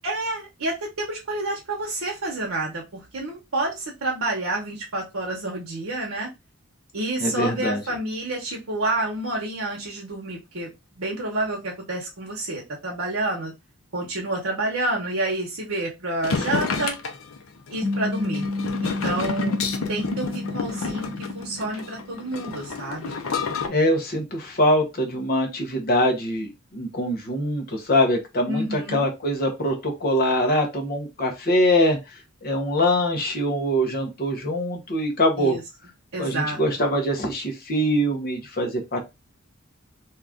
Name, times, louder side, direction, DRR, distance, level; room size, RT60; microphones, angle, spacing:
voice 1, 0.0-6.3 6.9-10.7 10.9-13.5 13.9-17.0 17.7-18.5 18.8-19.6 19.9-23.2 28.5-29.0 35.4-35.6 36.1-36.6, right 2 dB, 70° right, -1 dB, 0.9 m, -29 dB
voice 2, 7.2-7.8 23.7-35.6 36.2-39.0, equal, 45° left, 2 dB, 0.8 m, -23 dB
sound 1, 16.2-23.7, left 4 dB, 70° left, 0.6 m, -29 dB
sound 2, 17.8-22.5, left 2 dB, 10° right, 0.8 m, -31 dB
2.8 x 2.4 x 3.5 m, 0.23 s
head